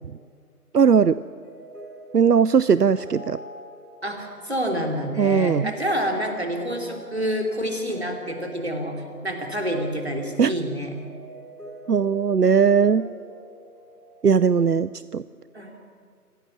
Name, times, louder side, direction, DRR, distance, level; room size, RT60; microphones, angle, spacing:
voice 1, 0.7-1.2 2.1-3.4 5.2-5.7 10.4-10.5 11.9-13.1 14.2-15.2, right 6 dB, 80° right, 16 dB, 0.7 m, -19 dB
sound 1, 1.3-14.2, right 1 dB, 80° left, 4.7 m, -45 dB
voice 2, 4.0-10.9 15.5-15.8, equal, 40° right, 3 dB, 3.3 m, -28 dB
26.5 x 17.0 x 7.3 m, 2.1 s
figure-of-eight pair, 180°, 47 cm